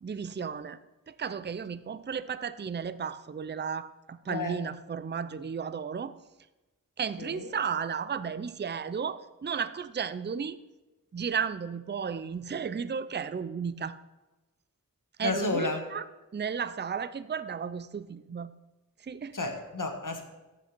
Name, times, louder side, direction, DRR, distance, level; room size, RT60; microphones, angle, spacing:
voice 1, 0.0-0.8 1.1-6.1 7.0-10.6 11.1-14.0 15.2-16.0 16.3-18.5 19.0-19.4, right 6 dB, 30° right, 14 dB, 0.4 m, -34 dB
voice 2, 7.2-7.5 15.2-15.8 19.3-20.2, left 3 dB, 65° left, 4 dB, 1.5 m, -32 dB
14.0 x 6.1 x 4.4 m, 1.1 s
wide cardioid pair, 45°, 35 cm